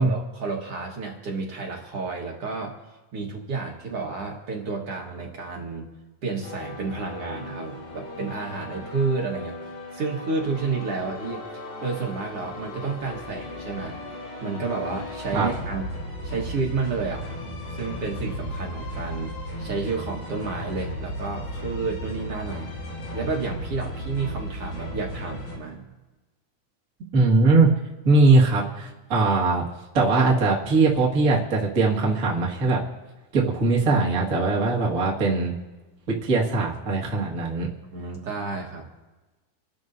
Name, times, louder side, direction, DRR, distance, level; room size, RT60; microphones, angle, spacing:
voice 1, 0.0-2.7 3.1-5.9 6.2-9.6 9.9-11.4 11.8-14.0 14.4-15.8 16.2-17.3 17.7-22.7 23.1-25.9 37.9-38.9, right 4 dB, 55° right, -1 dB, 2.2 m, -30 dB
sound 1, 6.4-25.6, left 1 dB, 75° left, 4.8 m, -36 dB
voice 2, 27.1-27.7 28.0-29.6 29.9-32.8 33.3-35.5 36.1-37.7, right 3 dB, 35° right, -3 dB, 1.6 m, -20 dB
28.5 x 12.0 x 2.7 m, 1.2 s
omnidirectional pair, 3.8 m